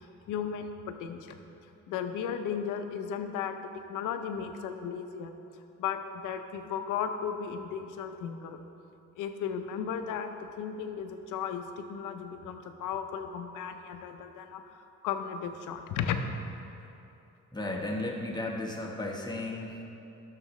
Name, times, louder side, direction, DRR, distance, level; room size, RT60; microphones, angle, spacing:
voice 1, 0.0-1.4 1.9-3.6 3.9-5.3 5.8-8.6 9.2-14.8 15.0-16.2, left 7 dB, 90° left, 7 dB, 0.7 m, -35 dB
voice 2, 17.5-19.8, left 2 dB, 15° left, -1 dB, 1.2 m, -34 dB
12.5 x 6.6 x 3.1 m, 2.8 s
cardioid pair, 90°, 30 cm